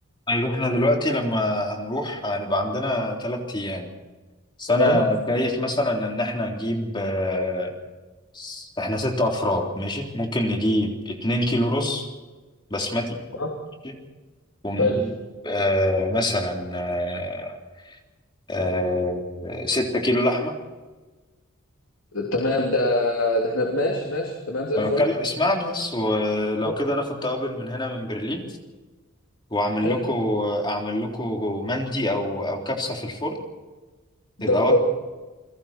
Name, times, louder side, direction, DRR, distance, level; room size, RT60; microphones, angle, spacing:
voice 1, 0.3-3.9 4.6-7.7 8.3-12.1 12.7-13.2 13.8-13.9 14.6-15.1 15.4-17.6 17.9-18.0 18.5-20.5 24.8-28.4 29.5-33.4 34.4-34.8, left 1 dB, 25° left, 1 dB, 3.6 m, -25 dB
voice 2, 22.1-25.0 26.6-26.7 29.8-30.0 34.4-34.8, left 1 dB, 70° left, 0 dB, 3.3 m, -23 dB
30.0 x 21.5 x 4.5 m, 1.3 s
head